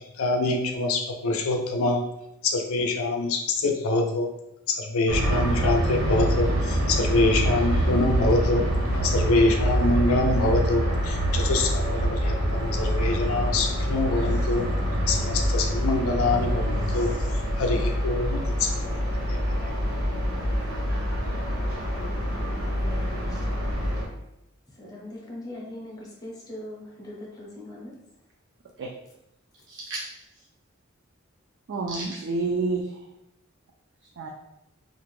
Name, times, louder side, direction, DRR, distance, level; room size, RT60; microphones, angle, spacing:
voice 1, 0.2-2.0 2.4-4.3 4.7-8.6 8.9-14.7 15.1-17.2 17.6-18.7 19.3-19.7, left 2 dB, 85° left, 4 dB, 0.5 m, -25 dB
sound 1, 5.1-24.0, equal, 85° right, 1.1 m, -26 dB
voice 2, 22.6-23.6 24.7-28.0, left 1 dB, 20° left, -4 dB, 0.6 m, -41 dB
voice 3, 29.7-30.1 31.7-33.0 34.2-34.3, right 3 dB, 55° right, -1 dB, 0.3 m, -29 dB
2.5 x 2.1 x 3.0 m, 0.84 s
head